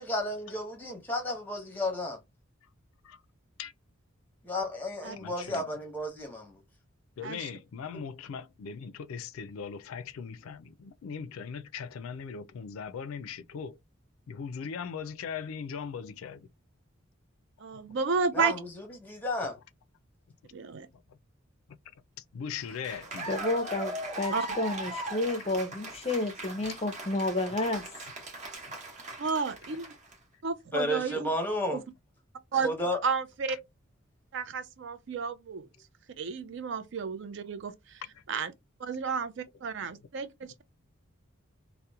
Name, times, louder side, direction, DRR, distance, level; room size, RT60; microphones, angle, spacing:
voice 1, 0.0-2.2 4.4-6.6 18.3-18.7 19.0-19.6 30.7-31.8 32.6-33.0, left 1 dB, 10° left, 0.8 m, -32 dB
voice 2, 5.2-5.8 7.2-13.8 14.3-16.5 22.2-23.4 26.7-26.8 30.9-31.1 33.5-33.6 38.1-38.2, left 6 dB, 85° left, 0.4 m, -39 dB
voice 3, 17.6-18.5 20.5-20.9 24.3-24.5 29.2-30.0 30.4-31.3 31.7-31.8 32.5-32.7 33.0-33.6 34.3-35.7 36.2-38.0 38.3-38.5 38.8-40.6, right 5 dB, 60° right, 0.4 m, -32 dB
Cheering / Applause, 22.6-30.1, right 1 dB, 35° right, 0.9 m, -39 dB
voice 4, 23.3-27.8, left 2 dB, 30° left, 0.5 m, -31 dB
2.8 x 2.1 x 2.3 m
head